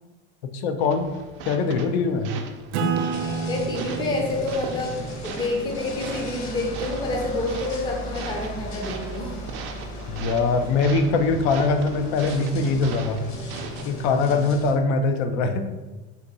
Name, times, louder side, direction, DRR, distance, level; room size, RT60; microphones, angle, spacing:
voice 1, 0.5-1.1 1.5-2.3 10.1-13.2 13.8-15.7, left 4 dB, 80° left, 7 dB, 0.6 m, -22 dB
sound 1, 0.8-13.8, right 5 dB, 40° right, 0.4 m, -39 dB
Acoustic guitar / Strum, 2.7-7.7, right 5 dB, 90° right, 0.6 m, -32 dB
sound 2, 3.1-14.7, equal, 45° left, 1.0 m, -36 dB
voice 2, 3.5-9.3, left 2 dB, 15° left, 0 dB, 0.5 m, -28 dB
4.0 x 2.6 x 4.0 m, 1.2 s
cardioid pair, 165°, 32 cm